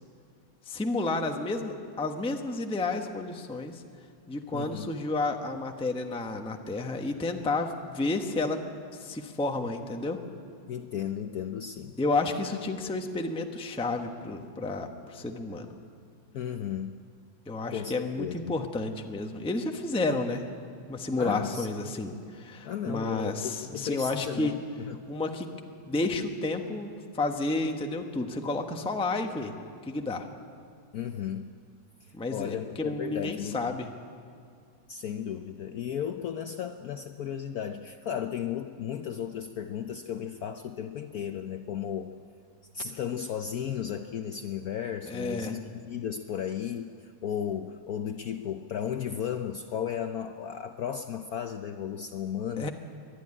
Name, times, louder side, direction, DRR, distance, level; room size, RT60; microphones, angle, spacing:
voice 1, 0.7-3.8 4.3-8.6 8.9-10.2 12.0-15.7 17.5-20.4 20.9-24.5 25.1-25.5 25.9-29.5 29.9-30.3 32.1-33.9 45.1-45.6 52.6-52.7, left 2 dB, 5° left, 4 dB, 0.6 m, -31 dB
voice 2, 4.5-4.9 10.7-11.9 16.3-16.9 17.7-18.6 21.1-22.2 22.6-25.0 30.9-31.5 32.3-33.8 34.9-42.1 42.7-52.7, left 9 dB, 65° left, 7 dB, 0.9 m, -35 dB
23.0 x 11.5 x 9.8 m, 2.3 s
omnidirectional pair, 2.1 m